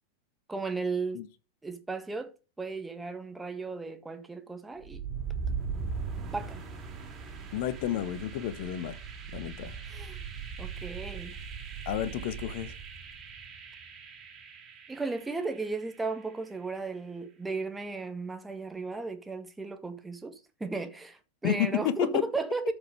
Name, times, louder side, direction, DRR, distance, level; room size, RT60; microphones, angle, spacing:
voice 1, 0.5-1.2 1.6-5.0 6.3-6.6 9.8-10.3 10.6-11.4 14.9-22.7, right 3 dB, 10° right, 1.7 m, -35 dB
sound 1, 4.8-16.7, right 5 dB, 25° right, 3.2 m, -40 dB
voice 2, 7.5-9.0 9.3-9.8 11.8-12.7 21.4-22.2, left 11 dB, 50° left, 1.3 m, -30 dB
13.5 x 5.6 x 4.9 m
figure-of-eight pair, 90°, 0 cm